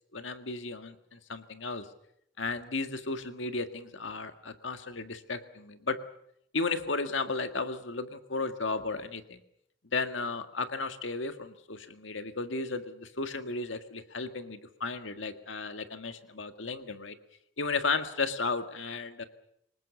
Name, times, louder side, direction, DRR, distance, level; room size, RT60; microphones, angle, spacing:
voice 1, 0.1-1.9 2.4-6.0 6.5-9.4 9.9-17.2 17.6-19.2, left 3 dB, 80° left, 8 dB, 1.8 m, -34 dB
24.5 x 20.0 x 7.2 m, 0.74 s
head